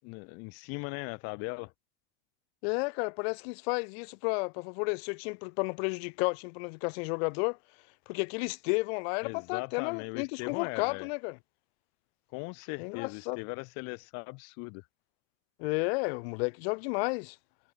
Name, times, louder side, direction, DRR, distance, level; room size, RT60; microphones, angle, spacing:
voice 1, 0.0-1.7 9.2-11.1 12.3-14.9, left 32 dB, 50° left, 0.4 m, -39 dB
voice 2, 2.6-7.6 8.1-11.4 12.8-13.4 15.6-17.4, left 32 dB, 65° left, 0.8 m, -32 dB
supercardioid pair, 150°, 33 cm